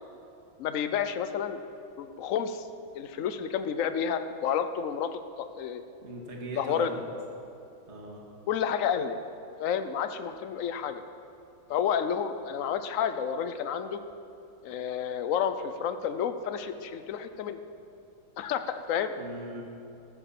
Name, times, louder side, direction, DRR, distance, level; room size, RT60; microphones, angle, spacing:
voice 1, 0.6-1.6 2.0-2.7 2.9-5.8 6.6-6.9 8.5-9.2 9.6-11.0 11.7-14.0 14.6-17.6 18.4-19.1, left 8 dB, 70° left, 10 dB, 0.7 m, -30 dB
voice 2, 6.0-7.0 7.9-8.2 19.2-19.6, right 2 dB, 35° right, -1 dB, 2.2 m, -39 dB
14.5 x 13.5 x 5.9 m, 2.7 s
omnidirectional pair, 2.2 m